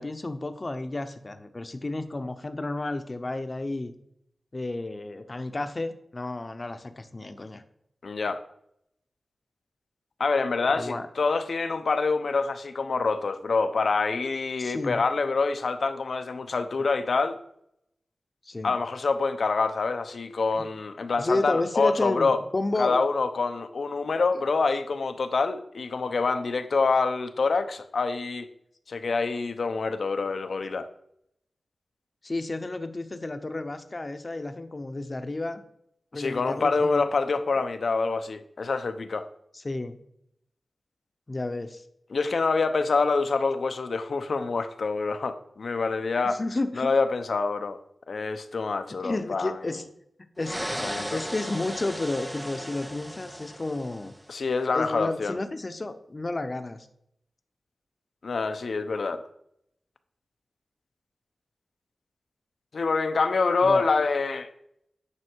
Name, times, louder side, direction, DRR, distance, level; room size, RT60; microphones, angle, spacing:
voice 1, 0.0-3.9 4.5-7.6 10.8-11.0 14.6-15.0 18.4-18.7 20.6-20.7 21.2-23.0 32.2-35.6 36.1-37.1 37.5-37.7 39.5-40.0 41.3-41.8 46.3-46.9 49.0-49.8 50.4-50.6 51.1-54.1 54.7-56.9 63.6-63.9, left 2 dB, 35° left, 9 dB, 0.8 m, -31 dB
voice 2, 8.0-8.4 10.2-17.4 18.6-22.4 22.8-28.5 28.9-30.9 36.1-39.2 42.1-46.4 46.8-47.8 48.1-49.8 50.8-51.2 54.3-55.4 58.2-59.2 62.7-64.5, left 4 dB, 75° left, 10 dB, 0.8 m, -26 dB
sound 1, 50.4-54.3, equal, 5° right, 0.5 m, -36 dB
9.8 x 6.2 x 4.6 m, 0.74 s
wide cardioid pair, 95°, 0 cm